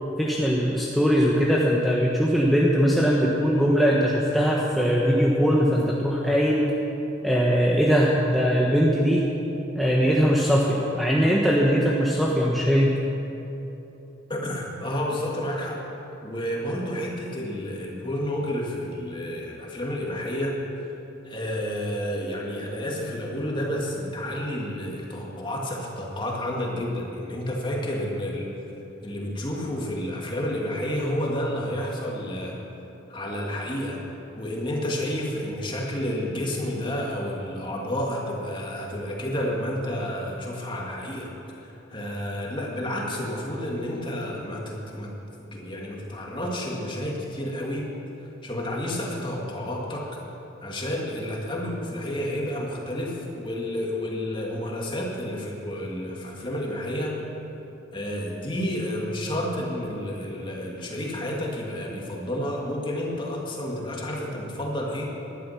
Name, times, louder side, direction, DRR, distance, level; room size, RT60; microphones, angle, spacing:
voice 1, 0.2-6.7 7.2-9.3 9.7-13.0, equal, ahead, -4 dB, 1.1 m, -21 dB
voice 2, 14.3-15.9 16.2-20.9 21.2-28.5 29.0-32.6 33.1-34.0 34.4-45.1 45.4-47.9 48.4-50.2 50.6-57.2 57.9-65.1, left 1 dB, 25° left, -2 dB, 2.4 m, -30 dB
18.0 x 11.5 x 5.9 m, 3.0 s
head